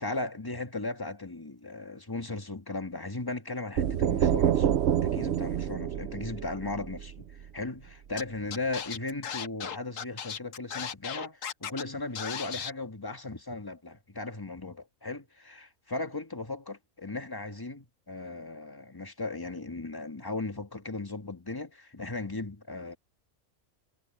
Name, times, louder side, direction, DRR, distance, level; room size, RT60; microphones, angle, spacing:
voice 1, 0.0-4.7 5.0-23.0, left 2 dB, 15° left, 1.7 m, -37 dB
sound 1, 3.8-7.5, right 9 dB, 60° right, 0.8 m, -27 dB
Scratching (performance technique), 8.2-8.3 8.5-11.8 12.2-12.7, left 8 dB, 70° left, 1.4 m, -36 dB
omnidirectional pair, 1.4 m